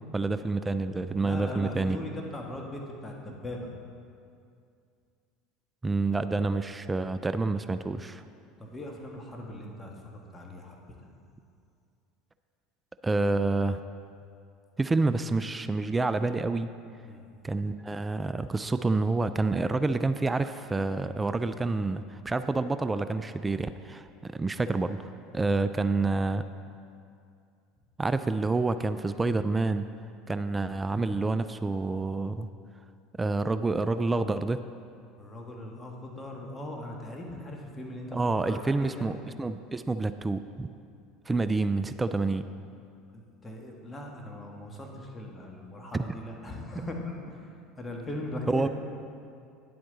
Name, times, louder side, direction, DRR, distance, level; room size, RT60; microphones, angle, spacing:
voice 1, 0.1-2.0 5.8-8.2 13.0-13.8 14.8-16.7 17.4-26.4 28.0-29.9 30.3-32.5 33.1-34.6 38.1-40.7 41.3-42.5 45.9-46.0 48.5-48.7, right 3 dB, 15° right, 11 dB, 0.3 m, -28 dB
voice 2, 1.2-3.7 8.6-10.8 17.1-17.2 35.2-38.2 38.4-39.1 43.1-47.4 47.8-48.7, left 1 dB, 20° left, 0 dB, 1.6 m, -39 dB
10.5 x 7.7 x 4.0 m, 2.4 s
hypercardioid pair, 75°, 0 cm